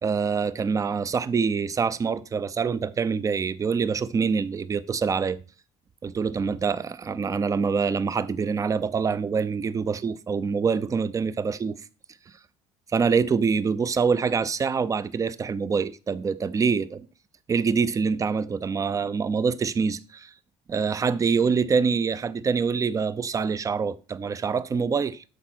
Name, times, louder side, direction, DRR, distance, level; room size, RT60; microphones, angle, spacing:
voice 1, 0.0-5.4 6.0-11.8 12.9-17.1 17.5-20.3 20.7-25.2, right 5 dB, 25° right, 0.6 m, -25 dB
12.0 x 4.2 x 6.1 m
cardioid pair, 115°, 12 cm